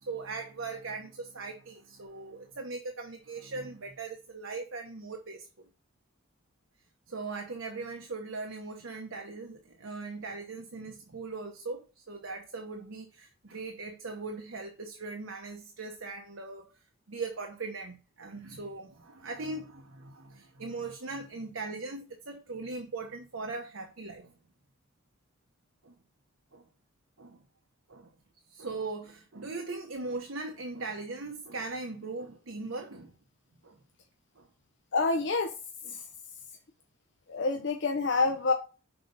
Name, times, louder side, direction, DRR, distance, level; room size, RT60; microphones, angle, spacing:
voice 1, 0.0-5.5 7.1-16.7 17.1-24.3 25.8-25.9 26.5-26.6 27.2-27.4 27.9-28.1 28.5-33.1 33.6-33.8 34.4-34.5 35.1-35.3 35.8-36.0 37.5-37.7 38.2-38.4, right 3 dB, 70° right, 0.9 m, -40 dB
voice 2, 34.9-35.5 37.3-38.5, left 3 dB, 55° left, 0.6 m, -27 dB
5.9 x 4.0 x 5.2 m
head